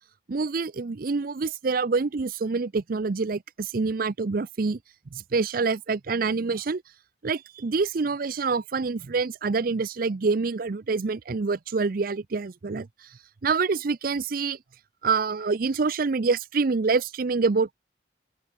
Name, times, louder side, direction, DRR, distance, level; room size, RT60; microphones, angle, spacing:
voice 1, 0.3-4.8 5.1-6.8 7.2-12.9 13.4-14.6 15.0-17.7, right 4 dB, 50° right, 0.5 m, -26 dB
open air
head